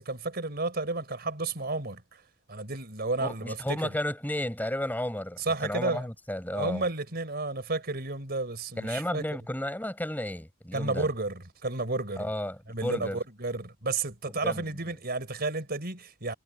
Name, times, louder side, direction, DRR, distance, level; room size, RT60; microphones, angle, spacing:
voice 1, 0.0-2.2 2.5-3.9 5.4-6.1 6.5-9.2 10.7-12.3 12.7-16.3, right 3 dB, 50° right, 4.7 m, -32 dB
voice 2, 3.2-6.8 8.8-11.1 12.2-13.2 14.4-14.7, left 1 dB, 10° left, 6.9 m, -33 dB
head